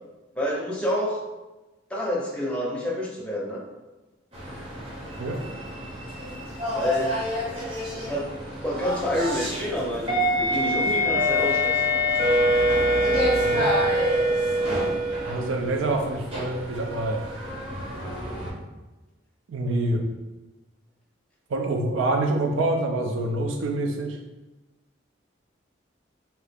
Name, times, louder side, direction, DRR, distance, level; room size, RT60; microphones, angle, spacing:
voice 1, 0.4-1.2 1.9-3.6 6.7-7.1 7.9-8.3 8.6-11.8, left 1 dB, 5° left, -4 dB, 0.5 m, -28 dB
sound 1, 4.3-18.5, equal, 30° right, 0.7 m, -26 dB
voice 2, 13.3-13.7 15.2-17.2 19.5-20.0 21.5-24.2, right 2 dB, 85° right, 3 dB, 0.5 m, -26 dB
2.8 x 2.3 x 3.4 m, 1.1 s
head